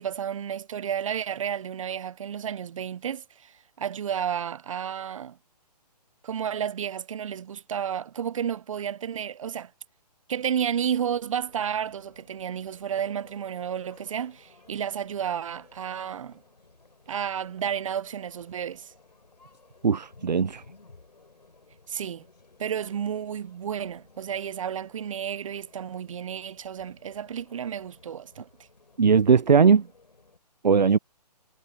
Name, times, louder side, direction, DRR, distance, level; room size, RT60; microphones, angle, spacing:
voice 1, 0.0-5.4 6.2-9.7 10.3-16.4 17.1-18.9 21.9-22.2 22.6-28.5, right 8 dB, 50° right, 0.8 m, -32 dB
sound 1, 11.4-30.4, left 3 dB, 90° left, 4.4 m, -57 dB
voice 2, 19.8-20.6 29.0-29.9 30.6-31.0, right 6 dB, 90° right, 0.6 m, -19 dB
figure-of-eight pair, 145°, 21 cm